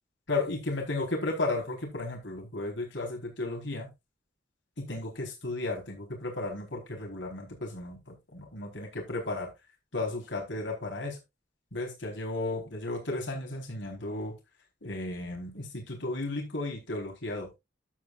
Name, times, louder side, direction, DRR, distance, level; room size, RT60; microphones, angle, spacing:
voice 1, 0.3-3.9 4.8-9.5 9.9-11.2 11.7-14.3 14.8-17.6, left 2 dB, 75° left, 4.3 m, -34 dB
12.0 x 8.4 x 2.5 m
head